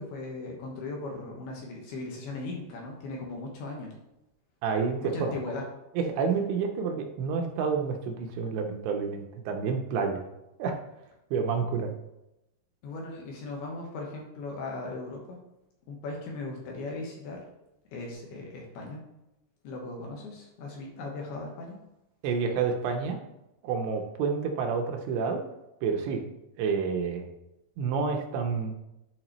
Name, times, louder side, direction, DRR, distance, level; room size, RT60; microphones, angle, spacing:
voice 1, 0.0-3.9 5.0-5.6 12.8-15.4 15.9-17.4 17.9-19.0 19.6-21.8, left 2 dB, 70° left, -1 dB, 2.7 m, -38 dB
voice 2, 4.6-5.3 6.0-10.2 10.6-10.8 11.3-11.9 22.2-23.2 23.6-25.4 25.8-26.2 26.6-27.3 27.8-28.7, right 5 dB, 80° right, 3 dB, 2.9 m, -29 dB
11.0 x 4.7 x 3.0 m, 0.89 s
omnidirectional pair, 5.3 m